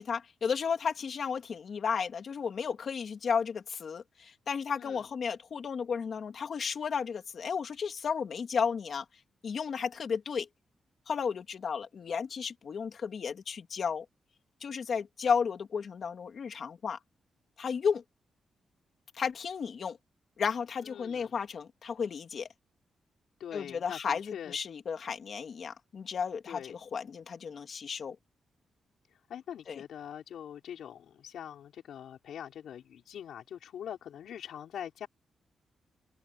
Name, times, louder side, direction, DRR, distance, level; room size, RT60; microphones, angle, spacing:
voice 1, 0.0-9.0 9.4-10.5 11.1-14.1 14.6-17.0 17.6-18.0 19.1-20.0 20.4-22.5 23.5-28.2 29.7-29.8, left 6 dB, 55° left, 2.4 m, -33 dB
voice 2, 20.8-21.3 23.4-24.6 26.5-26.8 29.3-35.1, left 9 dB, 90° left, 5.7 m, -43 dB
open air
wide cardioid pair, 145°, 0 cm